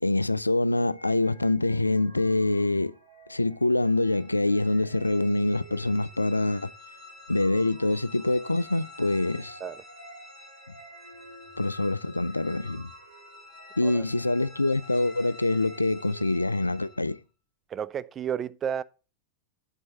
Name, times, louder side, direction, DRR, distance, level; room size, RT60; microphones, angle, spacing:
voice 1, 0.0-3.0 3.3-6.7 7.3-9.6 11.6-12.9 13.8-17.2, left 2 dB, 85° left, 0.3 m, -25 dB
sound 1, 0.9-17.1, right 1 dB, 85° right, 2.8 m, -51 dB
sound 2, 3.8-17.2, left 3 dB, 5° left, 2.0 m, -50 dB
voice 2, 17.7-18.8, right 8 dB, 25° right, 0.3 m, -32 dB
7.6 x 4.1 x 6.6 m
figure-of-eight pair, 90°, 0 cm